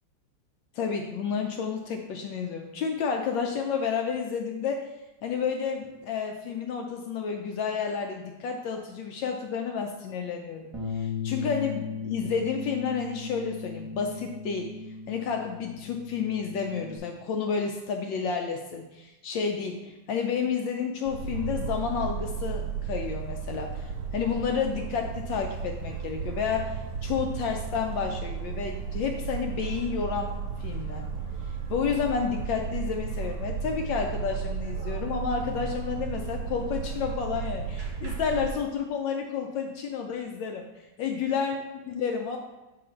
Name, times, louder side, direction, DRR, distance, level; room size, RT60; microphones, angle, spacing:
voice 1, 0.7-4.9 5.2-10.7 10.9-14.7 15.1-26.7 27.0-31.0 31.7-40.7 41.0-42.4, left 6 dB, 75° left, 3 dB, 1.2 m, -30 dB
Bass guitar, 10.7-17.0, left 4 dB, 15° right, 1.2 m, -37 dB
sound 1, 21.1-38.5, right 6 dB, 55° right, 1.2 m, -34 dB
6.6 x 3.9 x 4.3 m, 1.0 s
omnidirectional pair, 2.4 m